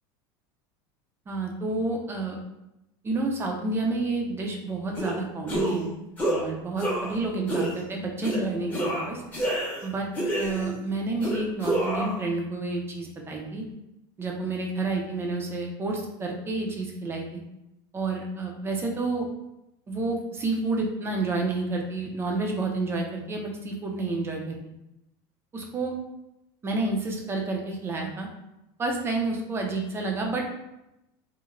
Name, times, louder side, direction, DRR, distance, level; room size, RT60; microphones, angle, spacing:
voice 1, 1.3-2.4 3.0-5.9 6.3-9.2 9.8-10.1 10.4-13.6 14.2-17.4 17.9-19.3 19.9-24.6 25.5-25.9 26.6-28.3 28.8-30.5, right 3 dB, 20° right, 1 dB, 0.5 m, -29 dB
sound 1, 5.0-5.1 5.5-5.8 6.2-6.4 6.8-7.2 7.5-7.8 8.2-8.4 8.7-9.8 10.1-10.8 11.2-12.2, right 1 dB, 15° left, 0.7 m, -28 dB
3.0 x 2.1 x 2.4 m, 0.89 s
supercardioid pair, 130°, 12 cm